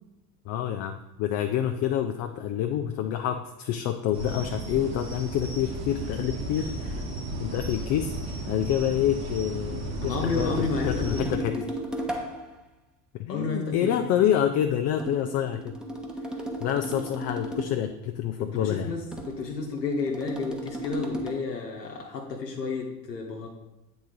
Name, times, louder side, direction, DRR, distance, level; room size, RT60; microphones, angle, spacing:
voice 1, 0.5-7.0 7.4-8.1 8.5-11.6 13.1-15.8 16.6-18.9, left 10 dB, 35° left, 6 dB, 0.4 m, -27 dB
sound 1, 4.1-11.3, right 2 dB, 35° right, 1.5 m, -34 dB
voice 2, 10.0-11.3 11.5-11.7 13.3-14.0 18.4-23.5, left 4 dB, 90° left, -1 dB, 0.8 m, -31 dB
sound 2, 10.6-12.6 15.0-17.9 19.1-21.3, right 1 dB, ahead, 0.9 m, -35 dB
8.4 x 3.9 x 3.7 m, 0.94 s
figure-of-eight pair, 65°, 48 cm